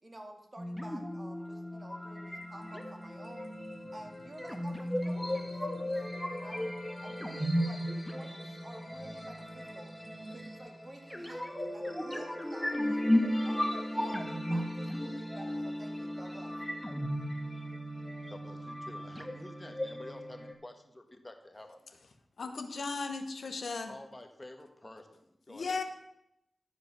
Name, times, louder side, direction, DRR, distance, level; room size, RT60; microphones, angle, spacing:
voice 1, 0.0-3.5 3.9-6.7 7.0-7.8 8.1-9.9 10.3-16.5, right 1 dB, 40° right, 2 dB, 2.0 m, -51 dB
sound 1, 0.6-20.5, equal, 5° left, 1.5 m, -35 dB
sound 2, 2.4-10.6, right 2 dB, 60° right, 2.0 m, -54 dB
voice 2, 18.3-22.0 23.8-25.8, left 1 dB, 25° left, 5 dB, 1.5 m, -50 dB
voice 3, 22.4-23.9 25.5-25.8, left 4 dB, 75° left, 6 dB, 1.0 m, -36 dB
12.0 x 5.1 x 6.0 m, 0.82 s
cardioid pair, 40°, 0 cm